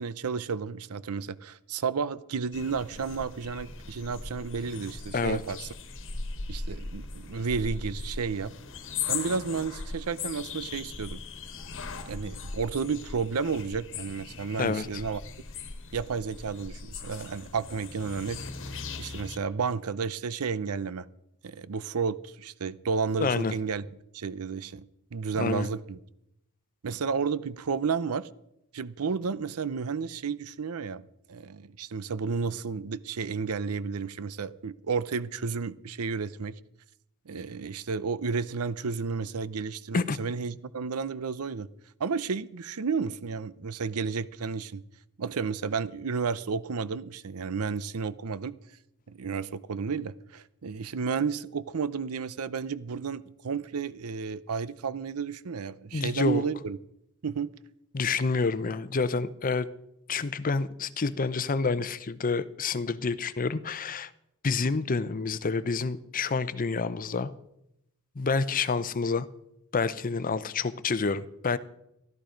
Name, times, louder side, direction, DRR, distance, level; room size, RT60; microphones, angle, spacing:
voice 1, 0.0-5.7 6.5-8.5 9.1-11.2 12.1-15.2 15.9-18.4 19.0-21.1 21.4-23.9 24.1-24.9 25.1-26.0 26.8-28.3 28.7-31.0 31.3-36.6 37.3-41.7 42.0-44.8 45.2-48.6 49.1-56.8 57.2-57.5, right 5 dB, 90° right, 0.6 m, -32 dB
sound 1, 2.5-19.4, left 4 dB, 60° left, 1.4 m, -39 dB
voice 2, 23.2-23.5 25.4-25.7 39.9-40.2 55.9-56.4 57.9-59.7 60.1-64.1 64.4-67.3 68.2-69.3 69.7-71.6, left 4 dB, 40° left, 0.6 m, -28 dB
14.0 x 12.5 x 5.1 m
head